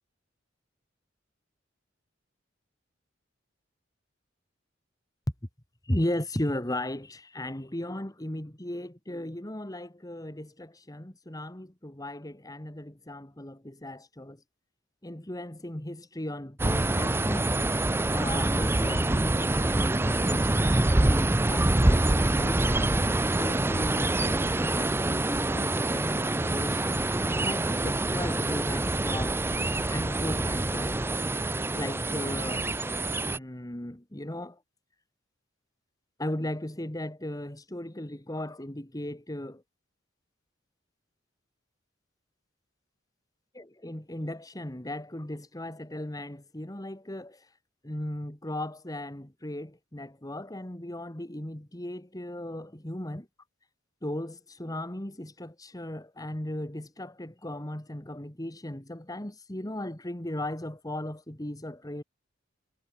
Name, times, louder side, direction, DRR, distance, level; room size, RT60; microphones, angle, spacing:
voice 1, 5.8-14.4 15.0-17.8 18.1-22.9 23.4-27.0 27.4-29.4 29.9-31.0 31.7-32.7 33.2-34.6 36.2-39.6 43.6-47.5 47.8-53.3 54.0-62.0, left 1 dB, 20° left, 2.0 m, -36 dB
sound 1, 16.6-33.4, right 2 dB, 10° right, 0.5 m, -26 dB
head